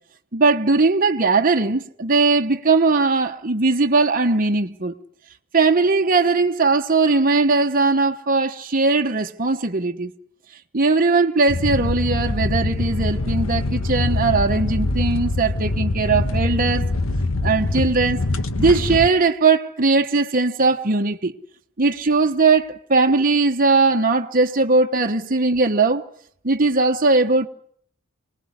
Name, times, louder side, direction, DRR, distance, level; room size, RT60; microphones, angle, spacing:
voice 1, 0.3-4.9 5.5-10.1 10.7-16.8 17.4-18.2 18.5-21.3 21.8-26.0 26.4-27.5, right 3 dB, 45° right, 1.1 m, -19 dB
sound 1, 11.5-19.1, left 2 dB, 85° left, 1.3 m, -23 dB
25.5 x 19.5 x 8.1 m
head